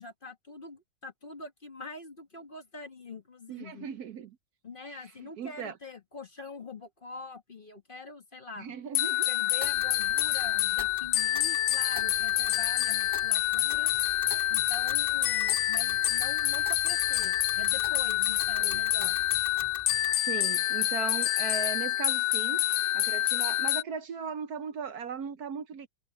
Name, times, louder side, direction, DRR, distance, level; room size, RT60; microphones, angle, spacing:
voice 1, 0.0-3.9 4.6-8.8 9.3-13.9 14.5-19.3, left 3 dB, 30° left, 1.8 m, -44 dB
voice 2, 3.5-4.3 4.9-5.1 5.4-5.7 8.6-9.3 18.6-18.8 20.3-22.6 22.9-25.9, right 6 dB, 65° right, 1.2 m, -38 dB
sound 1, 9.0-23.8, left 13 dB, 70° left, 1.1 m, -27 dB
Tick, 9.6-20.2, left 1 dB, 10° left, 3.1 m, -45 dB
omnidirectional pair, 1.9 m